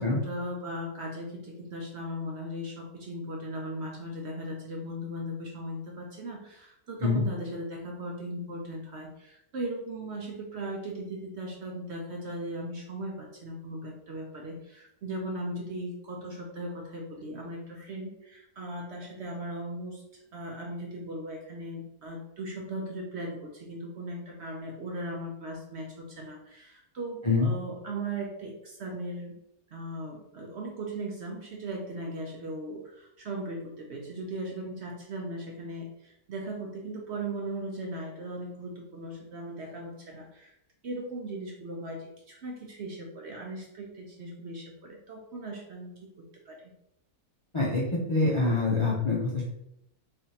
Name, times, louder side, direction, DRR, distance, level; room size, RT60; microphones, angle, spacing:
voice 1, 0.0-20.0 20.3-29.4 29.7-40.5 40.8-46.7, right 1 dB, 60° right, 0 dB, 0.8 m, -38 dB
voice 2, 47.5-49.4, left 3 dB, 35° left, -5 dB, 0.5 m, -25 dB
3.6 x 3.4 x 2.8 m, 0.79 s
omnidirectional pair, 1.6 m